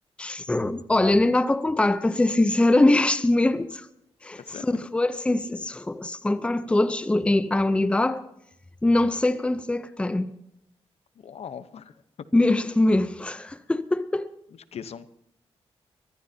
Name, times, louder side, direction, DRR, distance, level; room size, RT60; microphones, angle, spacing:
voice 1, 0.2-3.9 4.2-8.2 8.8-10.3 12.3-14.3, left 2 dB, 10° left, 0.6 m, -23 dB
voice 2, 4.4-4.8 11.2-11.9 14.7-15.1, left 7 dB, 70° left, 0.9 m, -39 dB
23.5 x 15.5 x 2.8 m
wide cardioid pair, 140°, 11 cm